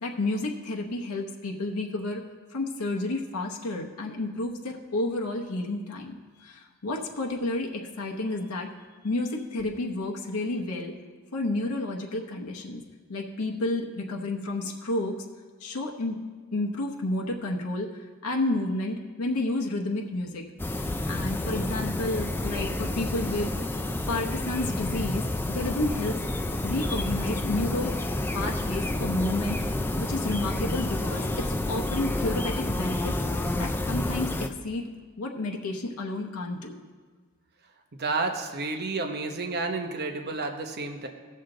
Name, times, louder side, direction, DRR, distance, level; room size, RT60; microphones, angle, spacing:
voice 1, 0.0-2.2 2.5-8.7 9.0-10.9 11.3-12.8 13.1-15.2 15.6-16.2 16.5-20.4 21.1-23.5 24.1-26.2 26.6-28.0 28.3-29.7 30.0-33.1 33.5-34.9 35.2-36.7, left 2 dB, 80° left, 0 dB, 0.9 m, -31 dB
sound 1, 20.6-34.5, left 1 dB, 10° left, 0.4 m, -29 dB
voice 2, 38.0-41.1, right 3 dB, 45° right, 5 dB, 0.9 m, -30 dB
16.0 x 6.5 x 3.8 m, 1.5 s
head